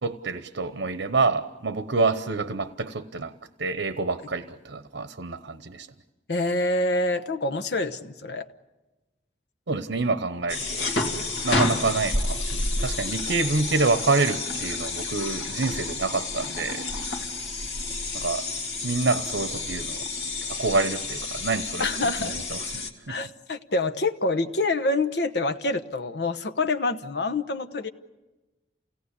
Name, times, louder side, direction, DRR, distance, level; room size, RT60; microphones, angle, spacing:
voice 1, 0.0-3.3 3.6-5.9 9.7-10.9 11.4-16.8 18.1-18.4 18.8-20.0 20.5-23.2, right 3 dB, 85° right, 10 dB, 0.9 m, -27 dB
voice 2, 6.3-8.5 21.8-22.4 23.1-27.9, left 2 dB, 70° left, 7 dB, 1.0 m, -26 dB
sound 1, 10.5-22.9, left 2 dB, 90° left, 2.6 m, -30 dB
28.5 x 18.0 x 8.3 m, 1.1 s
head